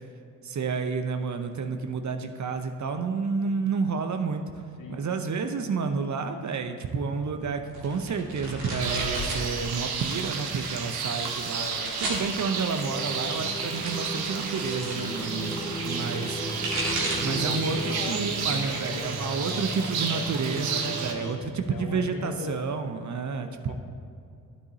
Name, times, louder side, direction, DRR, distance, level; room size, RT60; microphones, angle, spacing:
voice 1, 0.4-4.4 4.9-11.7 12.0-16.4 17.2-23.7, right 5 dB, 45° right, 7 dB, 0.8 m, -30 dB
sound 1, 7.7-9.5 9.8-10.4 11.1-12.2 13.3-15.0 16.3-17.4 17.8-18.3 18.7-19.6, right 1 dB, 80° right, 2.2 m, -35 dB
sound 2, 8.8-21.1, right 5 dB, 65° right, 1.1 m, -32 dB
voice 2, 11.5-12.0 17.0-20.5 21.7-22.6 23.7-23.8, left 4 dB, 50° left, 2 dB, 1.4 m, -39 dB
sound 3, 12.8-21.3, right 1 dB, 10° left, 2.1 m, -36 dB
12.0 x 7.7 x 2.8 m, 2.5 s
hypercardioid pair, 45°, 41 cm